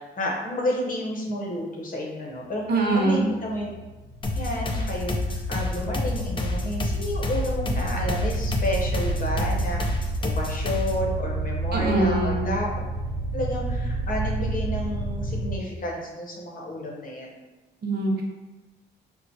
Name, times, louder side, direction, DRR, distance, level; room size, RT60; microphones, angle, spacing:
voice 1, 0.0-3.7 4.3-10.0 10.2-12.8 13.3-17.3, left 1 dB, 45° left, -1 dB, 0.9 m, -31 dB
voice 2, 2.7-3.3 11.7-12.5 17.8-18.3, right 2 dB, 55° right, 0 dB, 0.7 m, -23 dB
sound 1, 2.8-15.6, right 3 dB, ahead, 1.2 m, -30 dB
sound 2, 4.2-11.1, left 2 dB, 25° left, 0.5 m, -29 dB
4.4 x 2.0 x 2.8 m, 1.2 s
cardioid pair, 90°, 20 cm